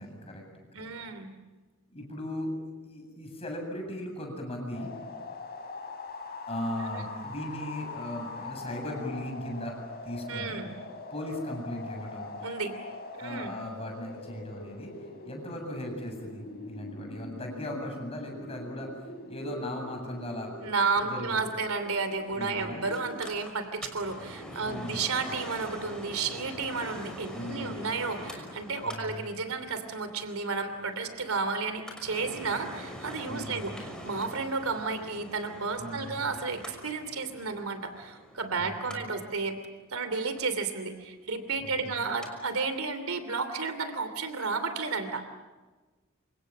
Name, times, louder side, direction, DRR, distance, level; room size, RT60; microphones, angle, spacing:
voice 1, 0.0-0.9 1.9-2.6 2.8-4.9 6.5-9.8 10.0-10.6 11.1-12.3 13.2-19.0 19.3-20.5 21.0-21.5 22.4-22.9 24.6-25.0 27.3-27.8 28.8-29.3 33.2-33.8 35.8-36.2 38.6-39.1 41.6-42.1, left 1 dB, 30° left, 2 dB, 7.9 m, -38 dB
voice 2, 0.7-1.3 10.3-10.7 12.4-12.8 13.1-13.5 20.6-39.6 39.9-45.2, right 4 dB, 85° right, 9 dB, 3.0 m, -32 dB
sound 1, 4.7-23.3, left 3 dB, 45° left, 4.2 m, -43 dB
Mechanical fan, 22.9-42.3 42.6-42.7, equal, 5° left, 5.9 m, -45 dB
29.0 x 26.5 x 7.6 m, 1.2 s
head